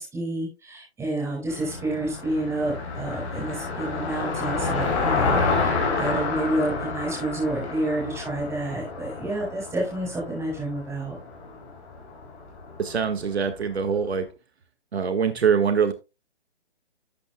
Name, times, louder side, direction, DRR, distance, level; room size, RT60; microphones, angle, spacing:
voice 1, 0.0-11.2, right 1 dB, 10° right, -2 dB, 5.0 m, -29 dB
Car passing by, 1.5-13.8, left 4 dB, 30° left, 4.2 m, -29 dB
voice 2, 12.8-14.3 14.9-15.9, right 6 dB, 70° right, 8 dB, 1.6 m, -23 dB
12.5 x 8.5 x 2.2 m, 0.26 s
hypercardioid pair, 145°, 33 cm